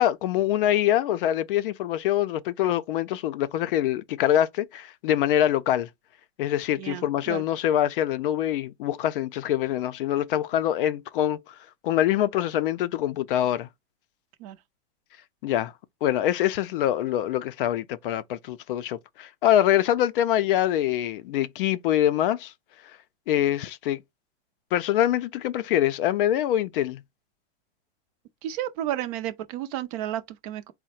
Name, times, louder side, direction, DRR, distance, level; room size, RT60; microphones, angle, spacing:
voice 1, 0.0-5.9 6.4-11.5 11.8-13.7 15.4-15.7 16.0-22.5 23.3-24.0 24.7-27.0, left 12 dB, 55° left, 0.4 m, -24 dB
voice 2, 6.8-7.4 14.4-14.6 28.4-30.7, right 12 dB, 35° right, 0.4 m, -32 dB
3.7 x 2.1 x 4.2 m
supercardioid pair, 150°, 34 cm